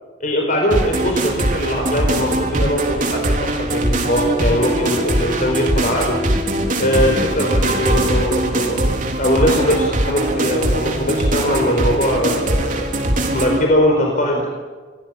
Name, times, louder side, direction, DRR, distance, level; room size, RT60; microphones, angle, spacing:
voice 1, 0.2-6.2 6.8-12.9 13.3-14.5, equal, 45° left, 1 dB, 4.6 m, -20 dB
sound 1, 0.7-13.6, right 1 dB, 45° right, 3.7 m, -21 dB
28.5 x 19.0 x 9.8 m, 1.4 s
head